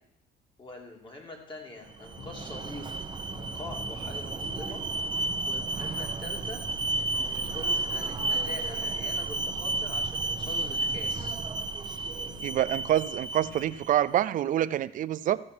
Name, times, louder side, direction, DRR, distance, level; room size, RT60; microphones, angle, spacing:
voice 1, 0.6-2.9 3.3-4.8 5.4-11.4, left 2 dB, 30° left, 1 dB, 2.6 m, -44 dB
Alarm, 1.9-13.9, right 2 dB, 25° right, 1.0 m, -32 dB
sound 1, 2.2-2.5 3.3-4.0 4.4-4.8 5.2-5.5 6.3-7.0 7.4-7.7 8.2-8.5 9.3-10.0 10.4-10.8 11.2-11.5 12.3-13.0 13.4-13.8, left 5 dB, 85° left, 1.6 m, -48 dB
voice 2, 12.4-15.4, right 12 dB, 50° right, 17 dB, 0.4 m, -26 dB
14.0 x 6.1 x 6.1 m, 0.80 s
cardioid pair, 110°, 17 cm